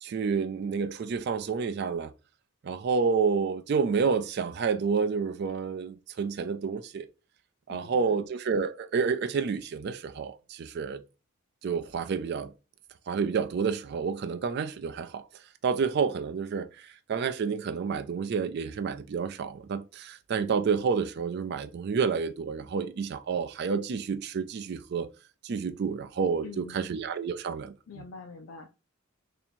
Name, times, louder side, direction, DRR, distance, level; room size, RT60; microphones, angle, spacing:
voice 1, 0.0-2.1 2.6-7.1 7.7-11.0 11.6-12.5 13.1-15.3 15.6-25.1 25.4-28.1, right 5 dB, 50° right, 0.3 m, -29 dB
voice 2, 7.7-8.2 26.4-26.9 27.9-28.7, left 4 dB, 80° left, 0.5 m, -45 dB
2.8 x 2.7 x 4.1 m
head